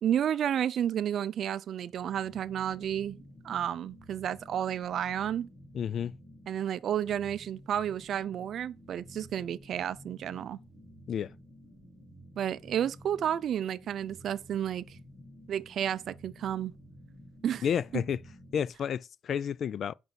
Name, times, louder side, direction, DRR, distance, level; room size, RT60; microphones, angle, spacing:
voice 1, 0.0-3.2 3.4-5.5 6.5-10.6 12.4-15.0 15.5-16.7 17.4-17.6 17.9-18.0, right 10 dB, 65° right, 0.5 m, -31 dB
sound 1, 1.7-18.7, equal, 25° left, 2.1 m, -52 dB
voice 2, 5.7-6.1 11.1-11.3 17.6-18.2 18.5-19.9, left 8 dB, 60° left, 0.3 m, -31 dB
5.6 x 5.4 x 5.7 m
cardioid pair, 90°, 0 cm